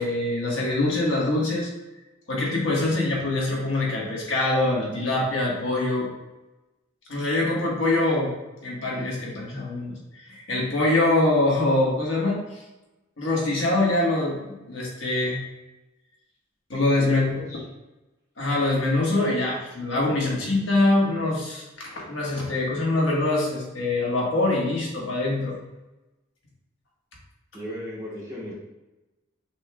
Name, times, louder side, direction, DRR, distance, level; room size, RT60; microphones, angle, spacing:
voice 1, 0.0-1.7 2.3-6.1 7.1-8.3 8.6-9.9 10.2-12.4 13.2-14.4 14.7-15.4 16.7-17.4 18.4-25.5, left 2 dB, 70° left, -4 dB, 1.3 m, -24 dB
voice 2, 17.0-17.6 20.2-20.5 27.5-28.5, left 1 dB, 15° right, -6 dB, 1.1 m, -36 dB
6.2 x 3.1 x 2.2 m, 1.0 s
head